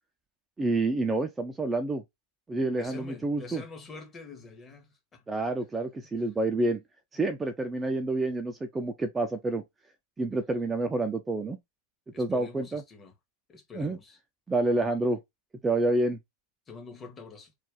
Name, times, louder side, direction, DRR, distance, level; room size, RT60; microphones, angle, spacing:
voice 1, 0.6-2.0 2.5-3.6 5.3-6.8 7.1-9.6 10.2-11.6 12.2-12.8 13.7-14.0 14.5-15.2 15.6-16.2, right 2 dB, 10° right, 0.3 m, -28 dB
voice 2, 2.7-5.2 6.2-6.3 12.1-13.1 13.5-14.2 16.7-17.5, left 4 dB, 20° left, 0.9 m, -46 dB
2.5 x 2.2 x 3.6 m
figure-of-eight pair, 90°, 0 cm